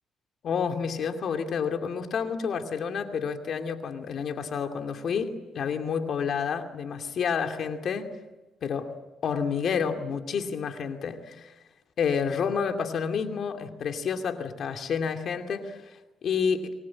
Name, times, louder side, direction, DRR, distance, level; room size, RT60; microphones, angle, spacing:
voice 1, 0.4-8.1 8.6-8.9 9.2-11.5 12.0-15.8 16.2-16.7, left 6 dB, 60° left, 5 dB, 2.5 m, -29 dB
25.5 x 20.5 x 8.7 m, 1.1 s
cardioid pair, 90°, 0 cm